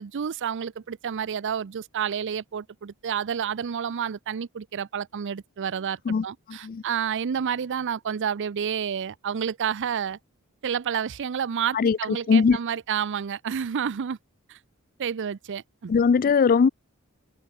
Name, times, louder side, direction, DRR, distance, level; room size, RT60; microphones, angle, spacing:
voice 1, 0.0-10.2 10.6-14.2 14.5-14.6 15.0-15.9, right 8 dB, 55° right, 0.5 m, -30 dB
voice 2, 6.1-6.8 11.7-12.6 15.9-16.7, left 5 dB, 40° left, 0.4 m, -21 dB
head